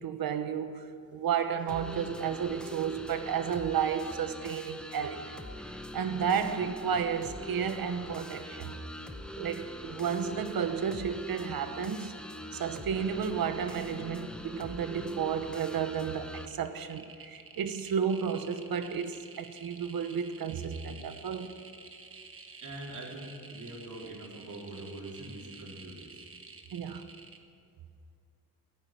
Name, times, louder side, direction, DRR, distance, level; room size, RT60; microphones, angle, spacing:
voice 1, 0.0-5.4 5.9-8.7 9.4-12.1 12.5-21.6 26.7-27.1, right 7 dB, 75° right, 1.1 m, -32 dB
sound 1, 1.7-16.5, left 1 dB, 5° left, 0.7 m, -43 dB
sound 2, 14.2-14.3 14.5-15.1 15.5-27.4, right 4 dB, 35° right, 1.2 m, -50 dB
voice 2, 22.6-26.2, right 1 dB, 55° right, 3.5 m, -43 dB
16.5 x 9.8 x 8.7 m
wide cardioid pair, 175°, 36 cm